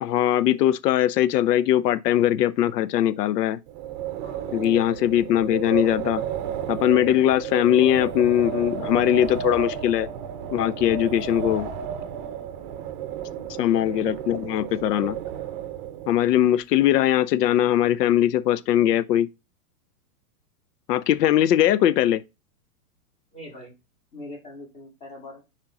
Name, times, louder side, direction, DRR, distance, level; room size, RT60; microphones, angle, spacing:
voice 1, 0.0-3.6 4.5-6.2 6.7-10.1 10.5-11.7 13.6-15.2 16.1-19.3 20.9-22.2, left 12 dB, 90° left, 0.6 m, -21 dB
Wind, 3.7-16.3, right 9 dB, 35° right, 0.7 m, -32 dB
voice 2, 4.2-4.8 13.3-13.7 23.3-23.7 24.1-25.4, left 1 dB, 15° left, 1.9 m, -42 dB
5.9 x 4.4 x 3.7 m
supercardioid pair, 160°, 47 cm